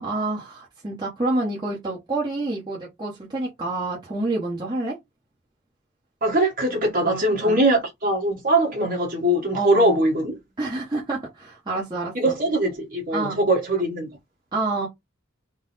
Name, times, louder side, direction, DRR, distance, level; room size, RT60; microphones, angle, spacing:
voice 1, 0.0-5.0 7.0-7.6 9.5-10.0 10.6-12.4 13.1-13.4 14.5-14.9, right 2 dB, 20° right, 0.8 m, -28 dB
voice 2, 6.2-10.3 12.1-14.1, right 1 dB, 40° right, 1.2 m, -21 dB
3.8 x 2.0 x 3.9 m
head